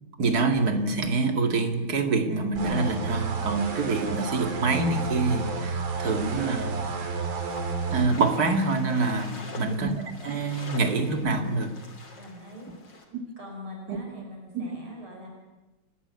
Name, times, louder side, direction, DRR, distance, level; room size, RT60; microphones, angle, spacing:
voice 1, 0.2-6.8 7.9-11.7 13.9-14.0 14.5-14.7, right 3 dB, 45° right, 6 dB, 2.5 m, -26 dB
sound 1, 2.6-8.1, right 4 dB, 65° right, 2.9 m, -31 dB
sound 2, 7.4-13.0, left 3 dB, 60° left, 3.7 m, -45 dB
voice 2, 9.3-9.9 12.1-13.0 13.4-15.3, left 1 dB, 90° right, 0 dB, 6.1 m, -44 dB
29.0 x 12.5 x 9.5 m, 1.1 s
omnidirectional pair, 2.3 m